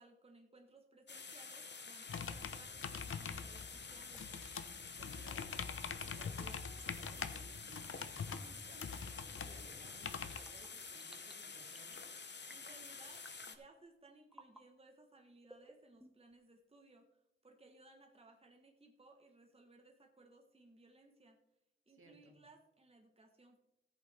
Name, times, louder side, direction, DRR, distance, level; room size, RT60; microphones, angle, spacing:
voice 1, 0.0-4.2 12.5-17.1 17.4-21.4 21.9-23.6, right 2 dB, 30° right, 2 dB, 1.1 m, -63 dB
sound 1, 1.1-13.6, left 5 dB, 55° left, 0.9 m, -49 dB
sound 2, 2.1-10.4, left 6 dB, 80° left, 0.7 m, -44 dB
sound 3, 4.1-4.4 5.3-5.6 6.7-7.0 8.2-8.5 9.1-9.4 10.3-11.3 11.7-12.1 12.4-12.8 13.2-13.6 14.3-14.6 15.4-16.3, right 1 dB, 5° right, 1.1 m, -59 dB
voice 2, 4.9-5.5 5.8-12.0 21.9-22.4, right 2 dB, 75° right, 1 dB, 2.4 m, -61 dB
14.5 x 8.3 x 3.3 m, 0.87 s
wide cardioid pair, 90°, 21 cm